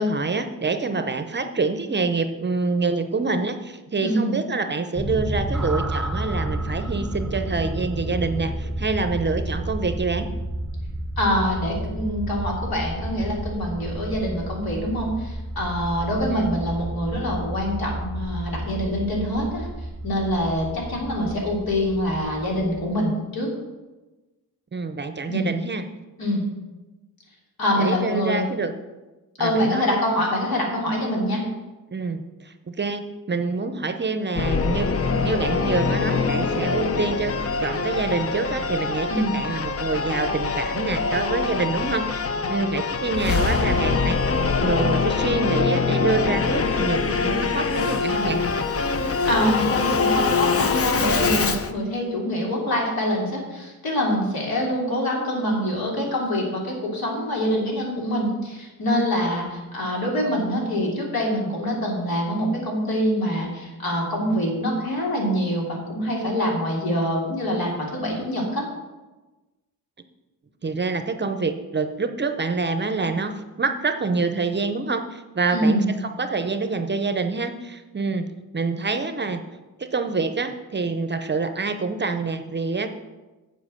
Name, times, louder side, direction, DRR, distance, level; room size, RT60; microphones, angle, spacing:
voice 1, 0.0-10.3 16.3-16.6 24.7-25.9 27.8-28.7 29.4-30.0 31.9-37.3 37.6-42.2 42.5-44.2 44.6-48.4 70.6-78.2 78.5-79.4 79.8-82.9, right 3 dB, 30° right, 8 dB, 0.7 m, -26 dB
voice 2, 4.0-4.4 11.2-19.7 20.0-23.5 25.3-25.5 26.2-26.4 27.6-28.4 29.4-31.4 39.1-39.3 49.3-68.7 75.5-75.9, equal, 70° left, -2 dB, 3.4 m, -25 dB
sound 1, 5.0-23.0, right 1 dB, ahead, 0.8 m, -31 dB
Singing / Musical instrument, 34.4-51.7, left 4 dB, 40° left, 0.7 m, -24 dB
8.0 x 7.4 x 6.5 m, 1.1 s
wide cardioid pair, 110°, 36 cm